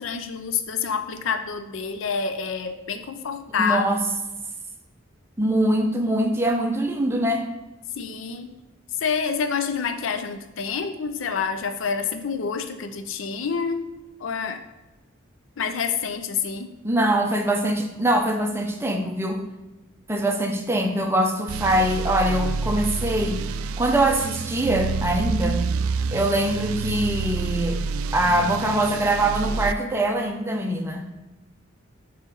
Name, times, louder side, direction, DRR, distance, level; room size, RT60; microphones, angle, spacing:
voice 1, 0.0-3.9 8.0-8.6 9.0-13.9 14.2-14.6 15.6-16.7, left 6 dB, 65° left, 8 dB, 0.4 m, -27 dB
voice 2, 3.6-4.1 5.4-7.5 16.8-19.4 20.1-23.4 23.8-25.6 26.1-27.8 28.1-31.1, right 1 dB, 10° right, 3 dB, 0.6 m, -23 dB
sound 1, 21.5-29.7, right 4 dB, 85° right, 0.3 m, -28 dB
6.2 x 4.3 x 3.8 m, 1.1 s
head